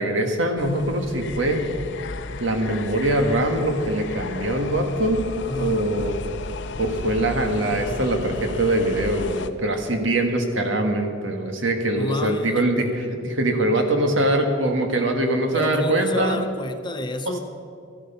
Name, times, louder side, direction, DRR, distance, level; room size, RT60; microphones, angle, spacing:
voice 1, 0.0-1.6 2.4-5.2 5.5-6.2 6.8-16.5 17.2-17.3, right 1 dB, 75° right, 4 dB, 1.7 m, -23 dB
sound 1, 0.6-9.5, left 3 dB, 65° left, 0.7 m, -34 dB
voice 2, 5.5-5.8 12.0-12.9 15.5-17.4, left 1 dB, 25° left, 8 dB, 0.7 m, -30 dB
14.0 x 13.0 x 5.6 m, 2.3 s
head